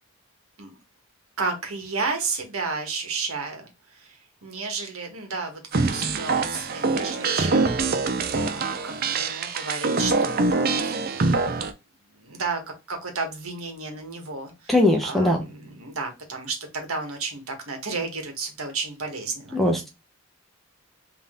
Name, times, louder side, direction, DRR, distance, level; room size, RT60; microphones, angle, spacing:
voice 1, 1.4-8.1 8.3-11.3 12.1-12.6 12.9-14.7 15.0-19.6, right 4 dB, 75° right, 1.3 m, -32 dB
sound 1, 5.7-11.7, right 3 dB, 45° right, 0.5 m, -24 dB
voice 2, 14.7-15.4 19.5-19.9, left 1 dB, ahead, 0.6 m, -20 dB
3.7 x 2.8 x 3.6 m
head